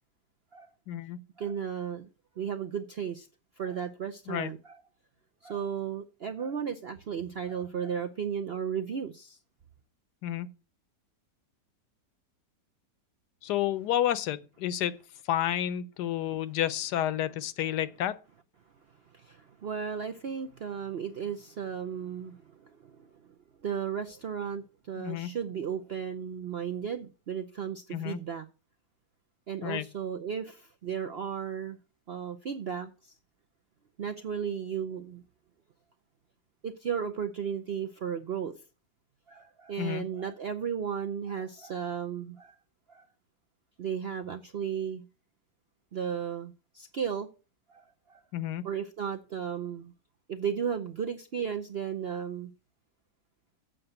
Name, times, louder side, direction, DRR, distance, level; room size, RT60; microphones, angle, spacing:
voice 1, 0.9-1.2 4.3-4.5 10.2-10.5 13.4-14.9 15.3-18.2 25.0-25.3 27.9-28.2 29.6-29.9 39.8-40.0 48.3-48.7, left 11 dB, 75° left, 1.2 m, -30 dB
voice 2, 1.4-2.1 2.4-3.3 3.6-4.8 5.4-9.4 19.1-23.1 23.6-28.4 29.5-31.8 32.1-33.1 34.0-35.2 36.6-38.5 39.3-42.6 42.9-43.1 43.8-45.0 45.9-47.3 47.7-48.2 48.6-49.9 50.3-52.5, right 7 dB, 65° right, 0.6 m, -35 dB
7.8 x 5.8 x 7.9 m
omnidirectional pair, 1.8 m